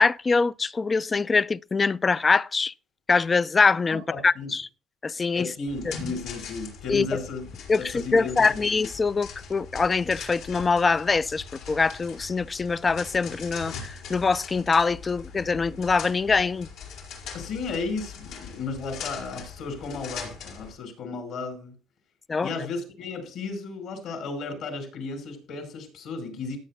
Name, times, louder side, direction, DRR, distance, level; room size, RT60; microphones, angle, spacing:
voice 1, 0.0-2.7 3.1-4.6 5.0-5.5 5.9-6.0 6.9-7.1 7.7-16.7 22.3-22.5, left 4 dB, 25° left, 0.4 m, -23 dB
voice 2, 3.9-4.5 5.3-7.5 7.7-8.7 17.3-21.7 22.4-26.6, left 4 dB, 70° left, 4.7 m, -34 dB
sound 1, 5.7-20.7, left 5 dB, 90° left, 5.0 m, -41 dB
18.5 x 8.4 x 2.2 m
cardioid pair, 105°, 0 cm